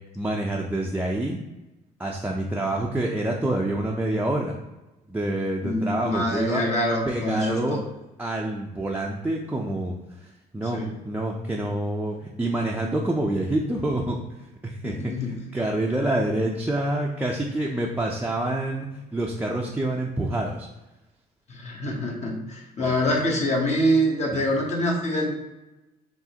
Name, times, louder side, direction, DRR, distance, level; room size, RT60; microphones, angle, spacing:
voice 1, 0.2-1.4 2.0-4.5 5.1-6.6 7.1-7.8 8.2-9.9 10.2-14.2 14.6-18.9 19.1-20.7 22.8-22.9 24.3-24.4, right 1 dB, 10° right, -2 dB, 0.4 m, -27 dB
voice 2, 5.6-7.8 10.7-10.9 14.8-15.4 21.5-25.3, equal, 40° left, -1 dB, 0.9 m, -25 dB
4.8 x 3.1 x 2.8 m, 1.0 s
cardioid pair, 110°, 17 cm